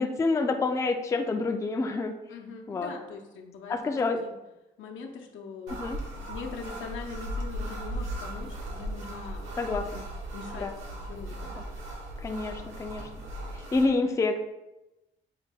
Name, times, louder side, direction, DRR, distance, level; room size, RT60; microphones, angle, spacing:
voice 1, 0.0-2.1 2.7-2.9 3.7-4.2 5.7-6.0 9.6-9.9 10.6-10.7 11.5-11.6 12.2-13.1 13.7-14.4, left 3 dB, 15° left, 5 dB, 0.3 m, -28 dB
voice 2, 2.3-4.3 4.8-11.5, left 5 dB, 80° left, 2 dB, 0.7 m, -42 dB
sound 1, 5.7-13.9, right 1 dB, 90° right, 1.0 m, -37 dB
5.5 x 2.2 x 3.4 m, 0.99 s
cardioid pair, 90°, 20 cm